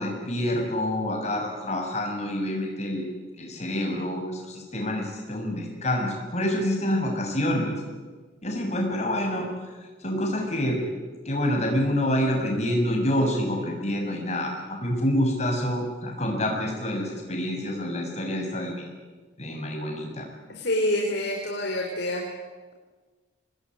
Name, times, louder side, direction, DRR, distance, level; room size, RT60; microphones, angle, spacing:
voice 1, 0.0-3.0 3.4-7.7 8.4-9.5 10.0-10.8 11.3-18.8 19.4-20.3, left 1 dB, 35° left, 1 dB, 7.1 m, -27 dB
voice 2, 20.5-22.2, left 1 dB, 60° left, 0 dB, 4.1 m, -26 dB
26.5 x 20.5 x 9.9 m, 1.4 s
head